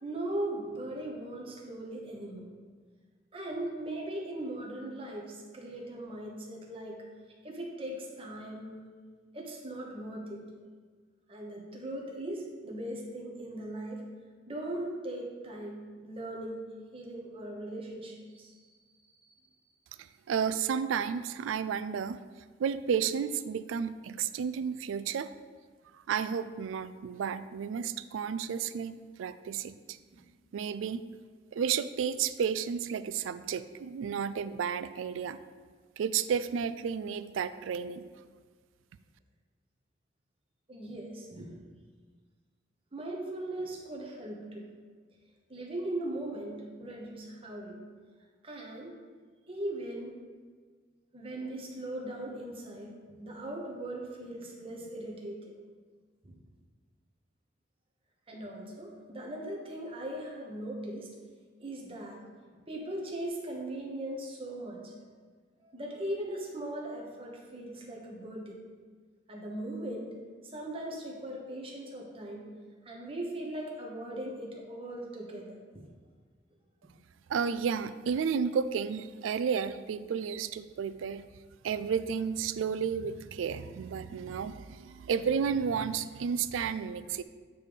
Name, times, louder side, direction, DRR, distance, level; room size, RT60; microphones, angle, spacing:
voice 1, 0.0-2.5 3.3-7.0 7.4-8.9 9.3-10.4 11.3-14.0 14.5-16.6 16.9-18.7 30.1-30.2 40.7-41.5 42.9-44.7 45.5-47.8 48.4-49.0 49.5-50.2 51.1-55.5 56.2-56.3 58.3-61.1 61.6-62.2 62.7-65.0 65.6-68.6 69.3-70.1 70.4-72.5 72.8-75.8, right 1 dB, 30° right, -1 dB, 1.1 m, -39 dB
voice 2, 20.0-22.2 22.6-25.3 26.1-30.0 30.5-31.0 31.5-35.4 36.0-38.1 77.3-81.2 81.6-87.2, right 7 dB, 90° right, 14 dB, 0.3 m, -32 dB
8.8 x 3.3 x 5.2 m, 1.5 s
head